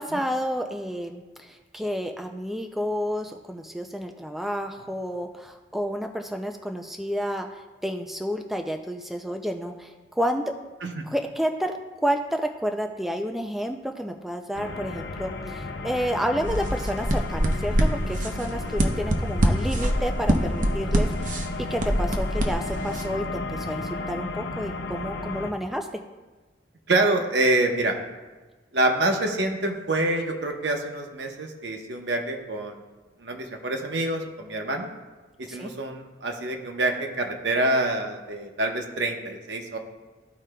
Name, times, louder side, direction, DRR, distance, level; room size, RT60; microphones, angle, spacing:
voice 1, 0.0-10.5 11.1-21.4 21.7-25.9 35.5-35.7, equal, ahead, 4 dB, 0.3 m, -30 dB
sound 1, 14.5-25.5, left 2 dB, 70° left, 0.7 m, -34 dB
sound 2, 16.4-23.0, equal, 45° right, 0.7 m, -25 dB
voice 2, 26.9-28.0 28.7-32.8 33.2-34.9 35.4-39.8, right 2 dB, 65° right, 3 dB, 0.9 m, -26 dB
14.5 x 4.8 x 2.2 m, 1.3 s
head